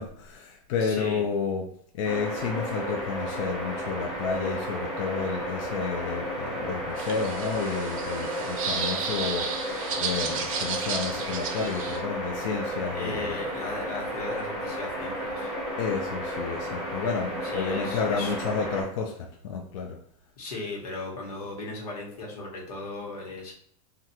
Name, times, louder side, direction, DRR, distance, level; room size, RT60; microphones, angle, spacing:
voice 1, 0.0-13.3 15.8-20.0, left 5 dB, 55° left, 1 dB, 0.4 m, -31 dB
voice 2, 0.8-1.3 12.9-15.5 17.4-18.4 20.4-23.5, left 2 dB, 85° left, -2 dB, 1.2 m, -36 dB
sound 1, 2.0-18.8, equal, ahead, 1.0 m, -33 dB
sound 2, 7.0-12.0, right 6 dB, 60° right, 0.6 m, -33 dB
3.3 x 2.4 x 2.8 m, 0.64 s
supercardioid pair, 165°, 19 cm